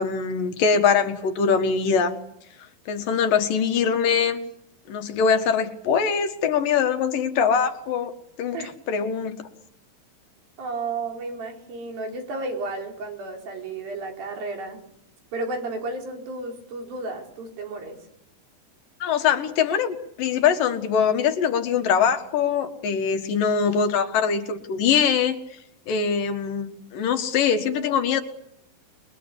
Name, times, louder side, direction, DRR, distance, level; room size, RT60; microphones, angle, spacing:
voice 1, 0.0-2.2 2.9-4.4 4.9-8.1 8.4-8.6 8.9-9.3 19.0-25.4 25.9-28.2, left 6 dB, 70° left, 7 dB, 3.4 m, -22 dB
voice 2, 10.6-14.8 15.3-18.0, right 3 dB, 80° right, 2 dB, 6.1 m, -32 dB
28.5 x 22.5 x 8.3 m, 0.75 s
omnidirectional pair, 4.1 m